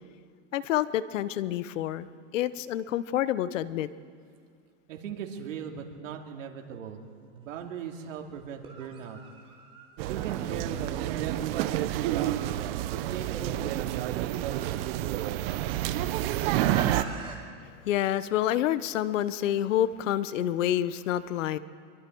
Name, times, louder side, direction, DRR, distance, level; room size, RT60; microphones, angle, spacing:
voice 1, 0.5-2.1 2.3-3.9 17.9-21.6, left 12 dB, 75° left, 16 dB, 1.0 m, -28 dB
voice 2, 4.9-9.2 10.0-12.2 12.9-14.7, right 7 dB, 85° right, 3 dB, 2.7 m, -40 dB
sound 1, 7.4-7.5 8.5-17.4, right 4 dB, 15° right, 2.6 m, -46 dB
sound 2, 10.0-17.0, right 13 dB, 50° right, 0.9 m, -29 dB
24.5 x 23.0 x 4.6 m, 2.2 s
supercardioid pair, 155°, 38 cm